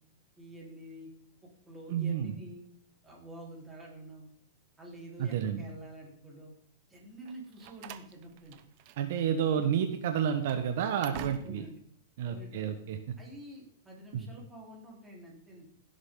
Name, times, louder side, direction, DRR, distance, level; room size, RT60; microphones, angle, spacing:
voice 1, 0.4-1.1 1.7-2.6 3.0-4.3 4.8-6.5 6.9-8.6 11.1-11.8 12.2-12.8 13.2-15.6, right 1 dB, 10° right, -3 dB, 4.1 m, -48 dB
voice 2, 1.9-2.3 5.2-5.6 9.0-11.6 12.2-13.2 14.1-14.3, right 8 dB, 60° right, 6 dB, 1.3 m, -30 dB
Slam, 7.2-9.3 9.5-9.7 10.2-11.8, right 11 dB, 45° right, 0.9 m, -47 dB
16.5 x 7.9 x 3.9 m, 0.63 s
hypercardioid pair, 150°, 0 cm